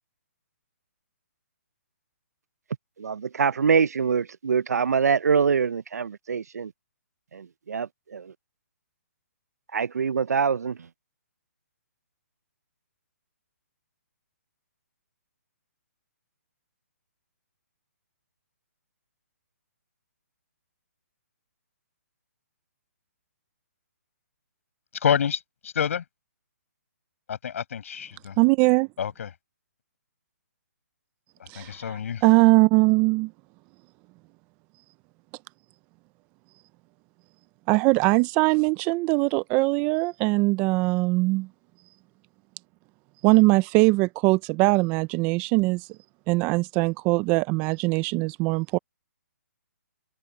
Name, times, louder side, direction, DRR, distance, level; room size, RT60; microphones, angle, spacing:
voice 1, 3.0-6.7 7.3-8.2 9.7-10.8, right 6 dB, 85° right, 0.5 m, -24 dB
voice 2, 25.0-26.0 27.3-28.4 29.0-29.3 31.6-32.2, left 8 dB, 60° left, 7.1 m, -28 dB
voice 3, 28.4-28.9 31.5-33.3 37.7-41.5 43.2-45.9 46.3-48.8, right 24 dB, 20° right, 0.4 m, -21 dB
open air
hypercardioid pair, 160°, 8 cm